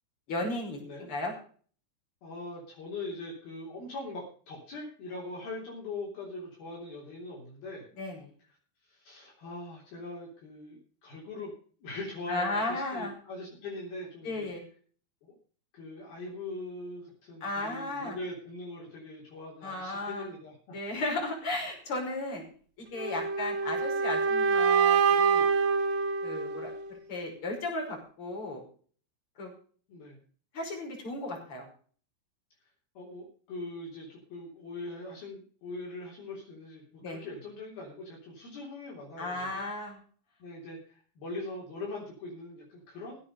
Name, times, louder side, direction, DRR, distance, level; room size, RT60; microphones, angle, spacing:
voice 1, 0.3-1.3 8.0-8.2 12.3-13.1 14.2-14.6 17.4-18.2 19.6-20.3 20.7-22.4 22.9-25.5 26.2-28.6 29.4-29.5 30.5-31.7 37.0-37.2 39.2-40.0, left 2 dB, 30° left, 0 dB, 5.9 m, -35 dB
voice 2, 2.2-7.8 8.9-11.5 11.8-14.5 15.7-20.8 29.9-30.2 32.9-39.7 40.4-43.2, left 2 dB, 55° left, -3 dB, 5.1 m, -41 dB
sound 1, 23.0-27.0, right 5 dB, 60° right, 2.4 m, -26 dB
16.0 x 9.3 x 5.4 m, 0.43 s
omnidirectional pair, 5.4 m